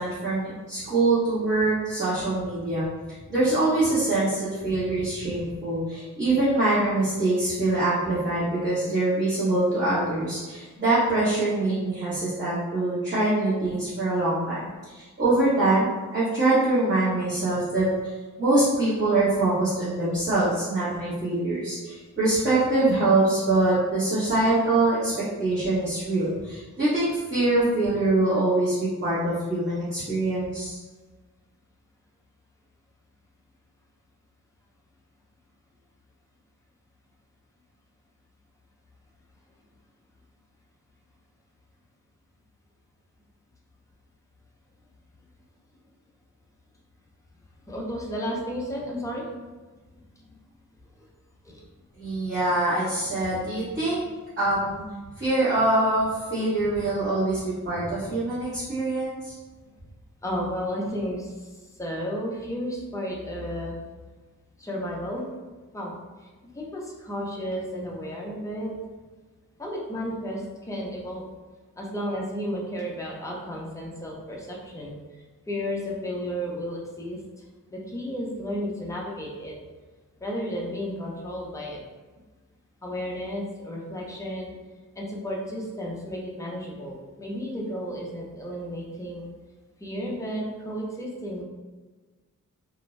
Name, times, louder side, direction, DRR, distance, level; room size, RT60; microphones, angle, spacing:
voice 1, 0.0-2.9 3.3-17.9 18.4-25.1 25.4-30.8 52.0-54.0 54.4-54.8 55.2-59.3, right 2 dB, 35° right, -14 dB, 1.1 m, -24 dB
voice 2, 47.7-49.3 51.4-51.6 56.0-56.4 57.0-57.4 59.3-59.4 60.2-61.5 61.8-63.8 64.6-65.3 65.7-65.9 66.6-68.7 69.6-71.2 71.8-74.9 75.5-77.2 77.7-79.5 80.2-81.8 82.8-84.5 85.0-89.3 89.8-91.4, equal, 10° left, -3 dB, 0.5 m, -33 dB
2.5 x 2.1 x 3.0 m, 1.3 s
wide cardioid pair, 155°, 33 cm